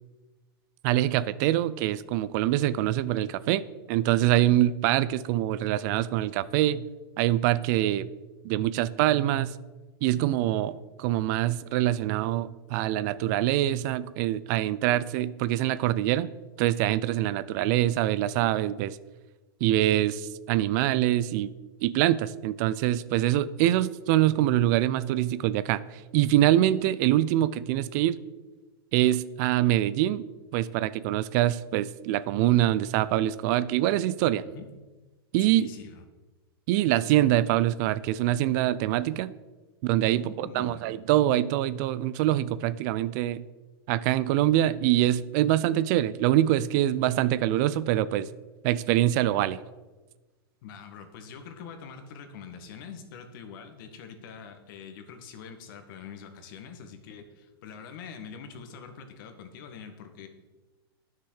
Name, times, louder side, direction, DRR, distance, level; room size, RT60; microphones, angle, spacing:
voice 1, 0.8-6.8 7.2-8.1 8.4-9.5 10.0-16.3 16.6-19.0 19.6-21.5 21.8-25.8 26.1-28.2 28.9-30.2 30.5-34.4 35.3-35.7 36.7-39.3 39.8-43.4 43.9-48.3 48.6-49.6, right 13 dB, 45° right, 17 dB, 0.5 m, -24 dB
voice 2, 35.4-36.0 40.1-40.9 50.6-60.3, left 6 dB, 55° left, 7 dB, 1.7 m, -44 dB
10.0 x 6.7 x 6.4 m, 1.2 s
hypercardioid pair, 125°, 13 cm